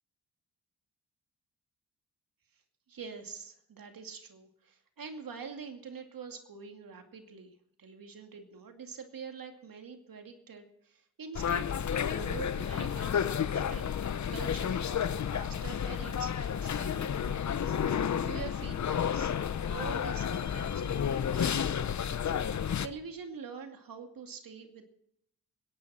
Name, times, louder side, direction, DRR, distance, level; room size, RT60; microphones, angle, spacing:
voice 1, 2.9-13.8 14.3-14.8 15.2-17.8 18.2-19.3 19.6-22.1 22.8-24.9, right 5 dB, 65° right, 5 dB, 2.5 m, -45 dB
sound 1, 11.3-22.9, left 8 dB, 50° left, 0.9 m, -31 dB
24.0 x 11.0 x 4.3 m, 0.75 s
cardioid pair, 55°, 37 cm